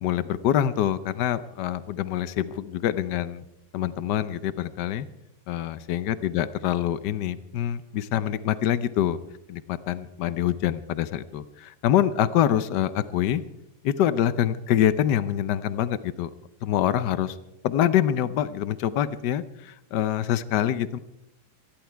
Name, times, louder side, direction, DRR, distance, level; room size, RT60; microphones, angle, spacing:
voice 1, 0.0-3.4 3.7-5.1 5.5-9.2 9.5-13.4 13.8-16.3 16.6-17.3 17.6-21.0, left 11 dB, 65° left, 14 dB, 1.2 m, -25 dB
26.5 x 11.0 x 4.6 m, 0.87 s
omnidirectional pair, 2.2 m